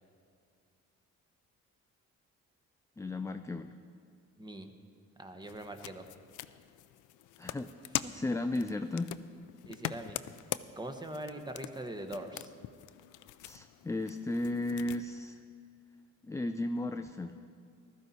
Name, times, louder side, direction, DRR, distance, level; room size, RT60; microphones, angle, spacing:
voice 1, 3.0-3.7 7.4-7.7 8.1-9.2 13.4-15.4 16.2-17.3, left 2 dB, 10° left, 8 dB, 0.4 m, -34 dB
voice 2, 4.4-4.7 5.2-6.0 8.0-8.1 9.7-10.2 10.8-12.5, right 1 dB, 15° right, 6 dB, 1.1 m, -42 dB
sound 1, 5.4-15.0, left 14 dB, 85° left, 0.5 m, -43 dB
15.0 x 12.5 x 4.2 m, 2.4 s
cardioid pair, 90°, 30 cm